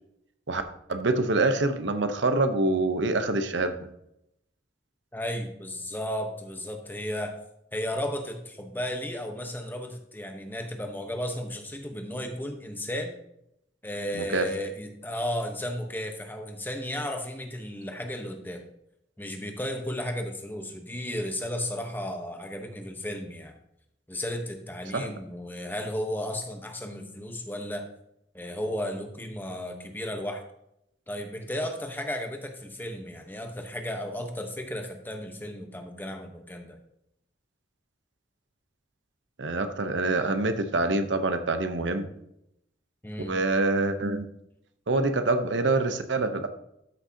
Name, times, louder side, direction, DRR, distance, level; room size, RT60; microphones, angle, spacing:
voice 1, 0.9-3.7 14.1-14.5 24.9-25.1 39.4-42.1 43.3-44.3 44.9-46.5, right 2 dB, 90° right, 8 dB, 0.8 m, -25 dB
voice 2, 5.1-7.3 7.7-13.2 13.8-18.6 19.2-23.5 24.1-27.9 28.3-30.4 31.1-36.8 43.0-43.4, left 1 dB, 10° left, 4 dB, 1.0 m, -34 dB
13.0 x 6.3 x 2.8 m, 0.79 s
head